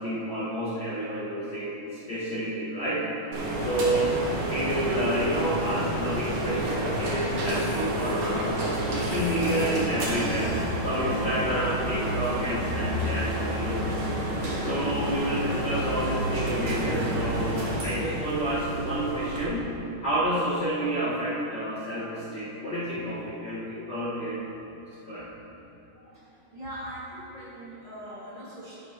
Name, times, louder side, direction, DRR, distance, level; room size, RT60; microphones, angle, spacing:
voice 1, 0.0-3.1 3.6-4.2 4.5-13.9 14.6-19.7 20.0-24.6 25.1-25.3, right 1 dB, 50° left, -9 dB, 1.3 m, -29 dB
sound 1, 3.3-19.4, right 1 dB, 55° right, 2.4 m, -29 dB
voice 2, 26.5-28.8, equal, 85° right, -9 dB, 0.3 m, -40 dB
11.0 x 10.5 x 2.9 m, 2.8 s
omnidirectional pair, 4.2 m